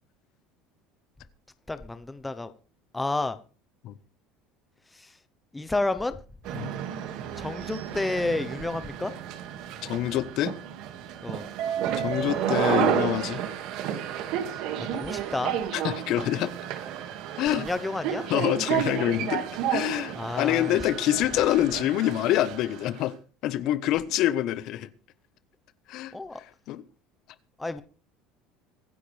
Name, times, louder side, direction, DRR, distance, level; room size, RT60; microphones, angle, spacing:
voice 1, 1.7-2.5 2.9-3.4 5.0-5.1 5.5-6.1 7.4-9.1 11.2-11.4 14.9-15.6 17.6-18.2 20.1-20.8 26.1-26.4 27.6-27.8, left 2 dB, 10° left, 0.9 m, -30 dB
sound 1, 6.5-23.0, right 9 dB, 60° right, 2.2 m, -31 dB
voice 2, 9.8-10.6 12.0-13.4 15.7-16.5 17.4-17.7 18.3-19.4 19.7-23.1 23.4-24.9 25.9-26.8, left 13 dB, 55° left, 1.2 m, -26 dB
24.5 x 10.0 x 3.5 m
cardioid pair, 130°, 0 cm